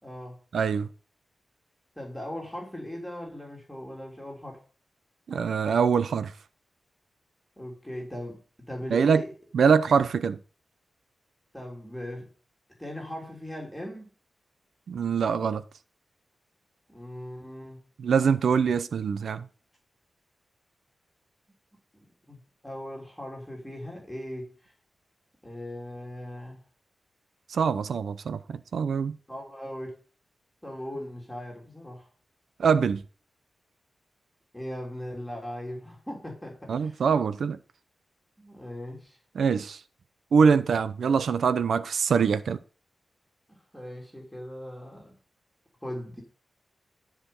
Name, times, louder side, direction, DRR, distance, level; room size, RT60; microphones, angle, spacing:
voice 1, 0.0-0.4 1.9-4.6 7.6-8.4 8.7-9.3 11.5-12.3 12.8-14.1 16.9-17.8 22.3-24.7 25.4-26.6 29.3-30.0 30.6-32.1 34.5-37.0 38.4-39.2 43.5-45.1 45.8-46.2, left 1 dB, 5° left, 3.4 m, -39 dB
voice 2, 0.5-0.9 5.3-6.3 8.9-9.2 9.5-10.4 14.9-15.6 18.0-19.4 27.5-29.2 32.6-33.0 36.7-37.6 39.3-39.8 40.3-42.6, right 6 dB, 80° right, 0.7 m, -24 dB
13.0 x 5.0 x 5.4 m
wide cardioid pair, 160°, 0 cm